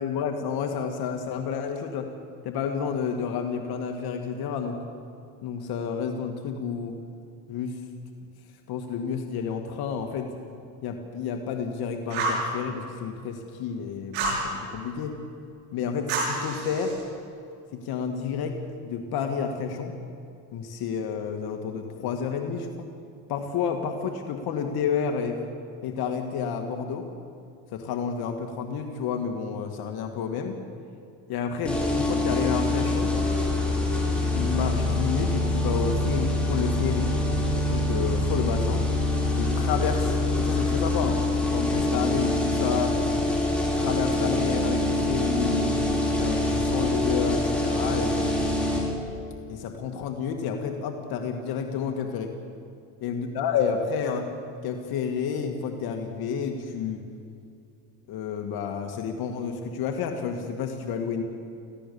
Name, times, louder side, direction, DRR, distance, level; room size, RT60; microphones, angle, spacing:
voice 1, 0.0-2.1 2.4-4.8 5.4-7.0 7.5-7.8 8.7-10.3 10.8-15.2 15.7-17.0 17.7-19.9 20.5-22.9 23.3-25.4 25.8-27.1 27.7-30.6 31.3-33.1 34.2-37.2 37.7-38.8 39.3-41.2 41.5-43.0 43.8-45.7 46.2-48.3 49.5-52.3 53.0-54.3 54.6-57.0 58.1-61.2, left 6 dB, 65° left, 4 dB, 2.0 m, -30 dB
Fire, 12.1-12.5 14.1-14.4 16.1-17.0, right 3 dB, 85° right, 7.8 m, -28 dB
sound 1, 31.6-48.8, left 2 dB, 5° left, 5.6 m, -25 dB
27.5 x 16.0 x 7.0 m, 2.4 s
cardioid pair, 110°, 40 cm